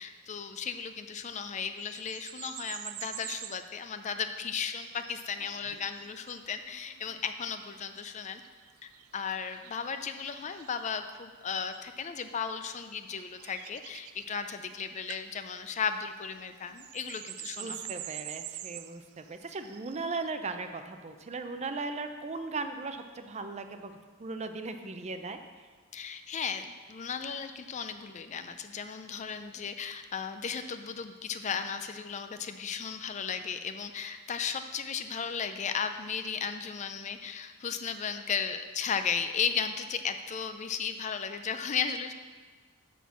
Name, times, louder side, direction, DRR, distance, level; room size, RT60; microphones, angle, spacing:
voice 1, 0.0-8.4 8.8-17.9 25.9-42.1, left 6 dB, 35° left, 9 dB, 0.4 m, -35 dB
sound 1, 1.7-3.6 4.4-11.0 11.7-12.1 12.6-14.7 15.1-15.3 15.5-20.3, right 14 dB, 85° right, 0.4 m, -46 dB
voice 2, 17.6-23.9 24.2-25.4, right 3 dB, 30° right, 8 dB, 0.5 m, -37 dB
6.3 x 6.0 x 6.9 m, 1.5 s
head